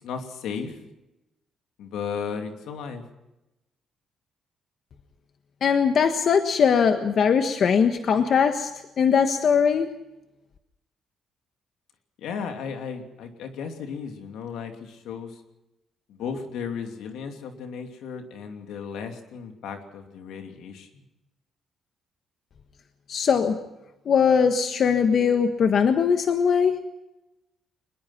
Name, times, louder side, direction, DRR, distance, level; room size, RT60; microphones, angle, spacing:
voice 1, 0.0-0.8 1.8-3.0 12.2-15.3 16.1-20.9, left 6 dB, 85° left, 5 dB, 2.8 m, -35 dB
voice 2, 5.6-8.7 9.0-9.9 23.1-23.6 24.1-26.7, left 6 dB, 60° left, 7 dB, 1.4 m, -20 dB
22.5 x 21.0 x 5.9 m, 0.96 s
cardioid pair, 90°, 0 cm